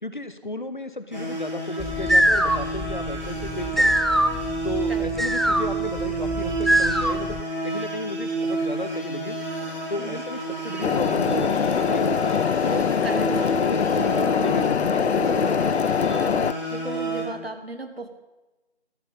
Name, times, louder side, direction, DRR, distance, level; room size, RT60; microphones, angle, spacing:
voice 1, 0.0-4.0 4.6-9.5 9.9-12.3 12.6-16.3, left 2 dB, 50° left, 11 dB, 0.8 m, -34 dB
sound 1, 1.1-17.2, right 2 dB, 45° right, 3.2 m, -30 dB
sound 2, 1.8-7.4, equal, ahead, 0.3 m, -23 dB
sound 3, 10.8-16.5, left 7 dB, 90° left, 0.5 m, -23 dB
voice 2, 16.7-18.1, right 2 dB, 65° right, 7 dB, 1.5 m, -35 dB
13.5 x 7.2 x 5.5 m, 1.1 s
figure-of-eight pair, 180°, 32 cm